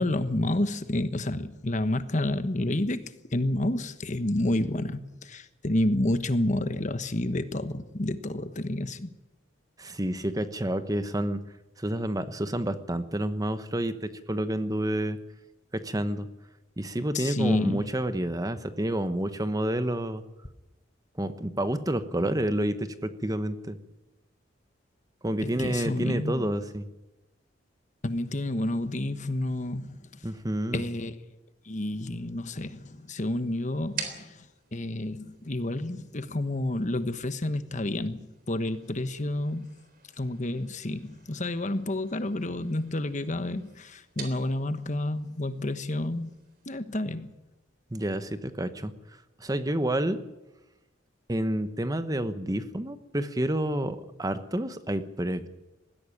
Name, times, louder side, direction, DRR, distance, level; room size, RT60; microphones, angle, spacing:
voice 1, 0.0-9.1 17.1-17.8 25.4-26.5 28.0-30.3 30.7-31.1 31.6-39.7 40.2-46.4 46.7-47.3, left 1 dB, 40° left, 11 dB, 1.2 m, -30 dB
voice 2, 9.8-11.4 11.8-15.2 15.7-16.3 16.8-20.2 21.2-23.8 25.2-26.9 30.2-30.8 47.9-48.9 49.4-50.2 51.3-55.5, right 1 dB, 20° right, 11 dB, 1.0 m, -29 dB
sound 1, 32.4-46.8, right 6 dB, 50° right, 3.7 m, -48 dB
20.5 x 15.5 x 10.0 m, 1.0 s
head